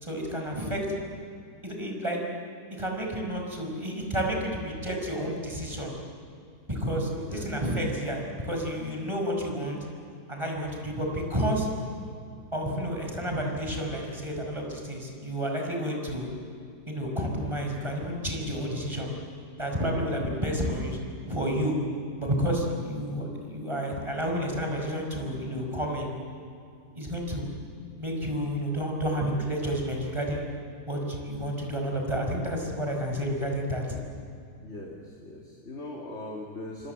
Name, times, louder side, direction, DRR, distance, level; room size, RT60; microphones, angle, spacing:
voice 1, 0.0-0.9 1.6-2.2 2.8-5.9 6.7-9.8 10.3-11.7 12.5-16.3 16.9-19.1 19.6-21.0 21.3-21.8 22.2-26.1 27.0-27.7 28.0-30.5 30.9-34.0, equal, 15° right, 1 dB, 5.3 m, -30 dB
voice 2, 7.1-7.6 34.6-36.9, left 1 dB, 40° left, -2 dB, 3.1 m, -40 dB
28.0 x 24.5 x 8.0 m, 2.4 s
omnidirectional pair, 1.9 m